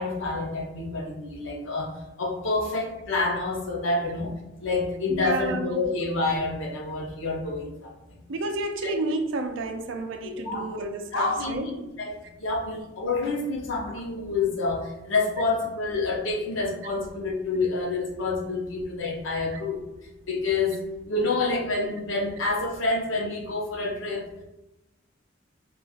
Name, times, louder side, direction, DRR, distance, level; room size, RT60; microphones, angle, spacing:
voice 1, 0.0-4.3 4.6-7.9 8.8-8.9 10.2-10.7 11.1-12.1 12.4-19.8 20.3-20.8 21.1-24.3, left 3 dB, 80° left, 0 dB, 0.8 m, -28 dB
voice 2, 5.1-5.8 8.3-11.7 18.1-18.2 19.5-19.6, right 2 dB, 70° right, 6 dB, 0.4 m, -31 dB
4.9 x 2.4 x 2.4 m, 0.95 s
head